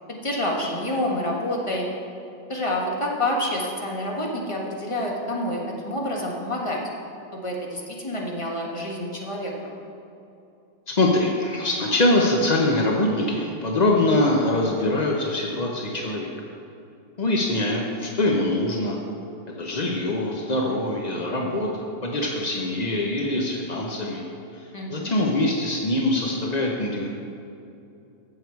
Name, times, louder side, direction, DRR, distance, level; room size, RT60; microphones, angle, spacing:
voice 1, 0.1-1.9 2.5-6.8 7.3-9.5 24.7-25.2, left 1 dB, 20° left, -1 dB, 1.2 m, -28 dB
voice 2, 10.9-16.3 17.2-19.0 19.6-24.2 24.5-27.1, left 1 dB, 50° left, 0 dB, 0.5 m, -23 dB
15.5 x 6.8 x 4.6 m, 2.7 s
omnidirectional pair, 2.1 m